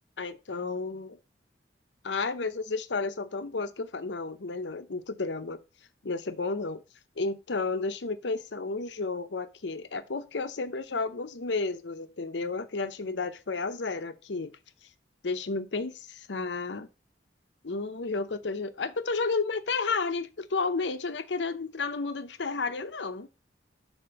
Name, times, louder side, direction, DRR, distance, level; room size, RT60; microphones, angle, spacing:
voice 1, 0.2-1.2 2.0-5.6 6.0-6.8 7.2-14.5 15.2-16.9 17.6-23.3, left 4 dB, 80° left, 0.8 m, -32 dB
6.9 x 4.4 x 5.5 m
head